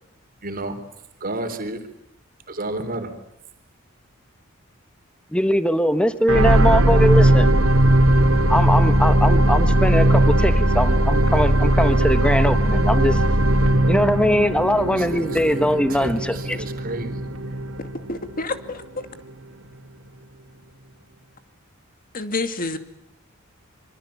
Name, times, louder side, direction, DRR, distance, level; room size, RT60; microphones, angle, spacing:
voice 1, 0.4-0.8 1.2-1.9 2.5-3.1 14.7-17.2, right 2 dB, 45° right, 8 dB, 3.7 m, -32 dB
voice 2, 5.3-7.5 8.5-13.2 13.9-16.6, equal, 5° left, 11 dB, 1.5 m, -21 dB
sound 1, 6.3-18.7 19.2-19.3, right 1 dB, 80° right, 3.0 m, -18 dB
voice 3, 18.1-19.0 22.1-22.8, left 3 dB, 45° left, 10 dB, 2.3 m, -28 dB
26.0 x 25.0 x 8.6 m, 0.80 s
head